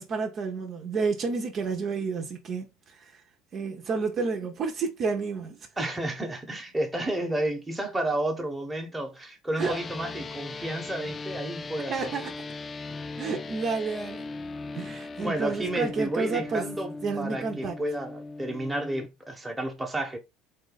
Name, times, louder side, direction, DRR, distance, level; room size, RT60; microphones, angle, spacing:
voice 1, 0.0-3.2 3.5-5.7 9.6-9.8 11.9-12.3 13.2-14.3 14.7-16.7 17.0-17.8, right 4 dB, 40° right, 0.9 m, -30 dB
voice 2, 5.8-12.1 15.2-16.9 17.2-20.2, right 1 dB, 5° right, 1.2 m, -31 dB
sound 1, 9.6-19.1, left 3 dB, 25° left, 0.3 m, -39 dB
4.1 x 2.6 x 4.0 m
supercardioid pair, 120°, 0 cm